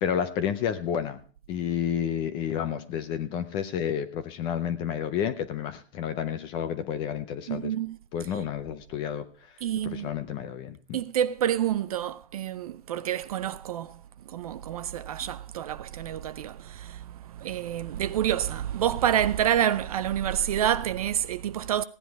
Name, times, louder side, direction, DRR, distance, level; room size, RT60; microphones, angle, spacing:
voice 1, 0.0-1.2 1.5-7.7 8.1-9.3 9.8-11.0, left 9 dB, 15° left, 0.6 m, -30 dB
voice 2, 7.5-8.0 9.6-10.1 10.9-13.9 14.3-17.0 17.4-21.8, right 10 dB, 35° right, 0.5 m, -28 dB
16.5 x 10.0 x 4.7 m
hypercardioid pair, 150°, 32 cm